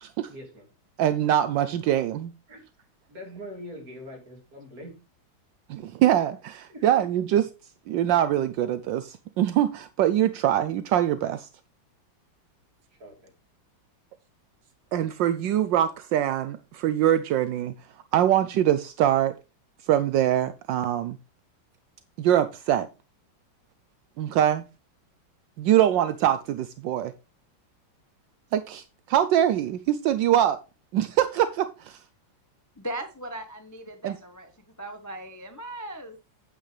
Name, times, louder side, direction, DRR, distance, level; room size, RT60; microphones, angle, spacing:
voice 1, 0.3-0.7 2.5-5.0 6.7-7.0 12.9-13.3, equal, 45° right, 3.3 m, -43 dB
voice 2, 1.0-2.3 5.7-7.5 7.9-11.5 14.9-17.7 18.1-19.3 19.8-21.2 22.2-22.9 24.2-24.6 25.6-27.1 28.5-30.6 30.9-32.0 34.0-34.2, right 11 dB, 75° right, 1.3 m, -23 dB
voice 3, 32.8-34.5 34.8-36.2, right 1 dB, 15° left, 0.8 m, -38 dB
9.2 x 8.2 x 3.3 m
omnidirectional pair, 2.1 m